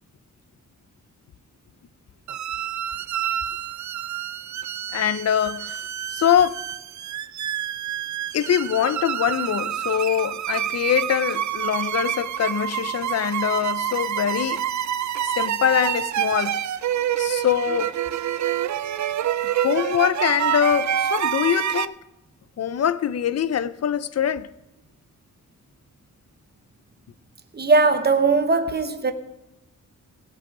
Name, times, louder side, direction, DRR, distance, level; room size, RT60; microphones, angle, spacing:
sound 1, 2.3-21.8, right 10 dB, 60° right, 0.5 m, -27 dB
voice 1, 4.9-6.6 8.3-14.6 15.2-16.6 17.2-18.0 19.4-21.9 22.6-24.5, left 9 dB, 50° left, 0.5 m, -23 dB
voice 2, 27.5-29.1, right 3 dB, 30° right, 1.0 m, -19 dB
19.0 x 7.6 x 4.9 m
wide cardioid pair, 145°, 32 cm